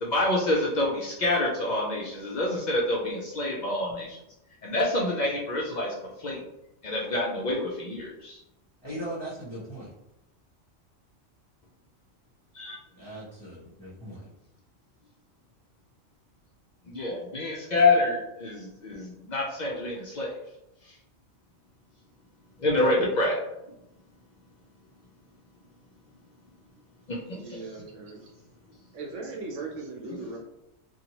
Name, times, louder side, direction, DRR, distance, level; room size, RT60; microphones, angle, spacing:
voice 1, 0.0-4.2 4.6-5.9 6.2-6.4 6.8-8.4 12.6-12.8 16.9-20.3 22.6-23.4 30.1-30.3, left 2 dB, 70° left, -3 dB, 0.4 m, -27 dB
voice 2, 8.8-9.9 13.0-14.3, right 1 dB, 30° left, -8 dB, 0.6 m, -38 dB
voice 3, 27.3-28.3 28.9-30.4, right 3 dB, 75° right, 2 dB, 0.9 m, -38 dB
2.7 x 2.2 x 2.8 m, 0.85 s
omnidirectional pair, 1.3 m